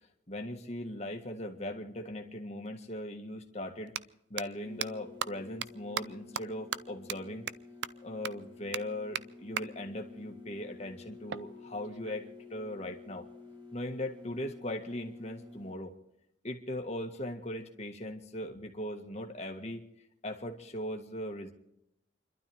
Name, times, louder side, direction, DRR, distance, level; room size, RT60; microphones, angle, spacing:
voice 1, 0.3-3.9 4.3-7.5 8.0-12.2 12.5-13.3 13.7-15.9 16.4-19.9 20.2-21.5, left 1 dB, 35° left, 3 dB, 1.9 m, -39 dB
sound 1, 2.7-2.8 3.8-4.0 4.4-4.5 4.8-4.9 5.2-5.3 5.6-5.7 6.0-6.1 6.4-6.5 6.7-6.8 7.1-7.2 7.5-7.6 7.8-7.9 8.2-8.3 8.7-8.8 9.2-9.3 9.6-9.7 11.3-12.3, right 8 dB, 60° right, 0.5 m, -35 dB
sound 2, 4.6-15.7, left 3 dB, 25° right, 2.8 m, -51 dB
30.0 x 12.5 x 3.6 m, 0.80 s
head